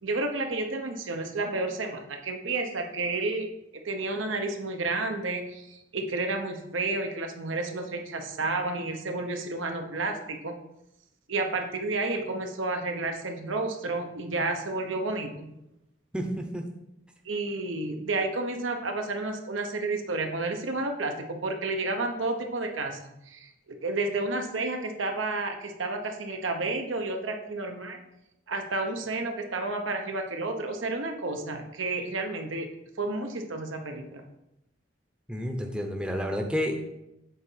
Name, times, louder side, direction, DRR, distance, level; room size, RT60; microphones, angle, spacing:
voice 1, 0.0-10.6 11.3-15.5 17.2-28.0 28.5-32.7 33.0-34.2, right 2 dB, 85° right, 4 dB, 1.0 m, -31 dB
voice 2, 35.3-36.8, equal, 5° right, 2 dB, 0.7 m, -30 dB
7.7 x 4.1 x 5.7 m, 0.87 s
head